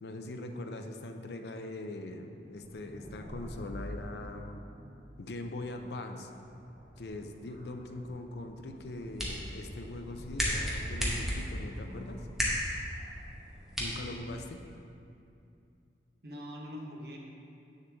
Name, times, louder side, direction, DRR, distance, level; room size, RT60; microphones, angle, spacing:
voice 1, 0.0-4.6 5.2-6.3 7.0-12.3 13.8-14.6, left 2 dB, 70° left, 5 dB, 0.5 m, -41 dB
sound 1, 2.4-15.0, equal, 55° left, 1.7 m, -48 dB
sound 2, 8.8-14.8, equal, ahead, 1.0 m, -36 dB
voice 2, 13.8-14.3 16.2-17.2, equal, 60° right, 0 dB, 1.0 m, -44 dB
7.6 x 6.5 x 3.5 m, 2.5 s
head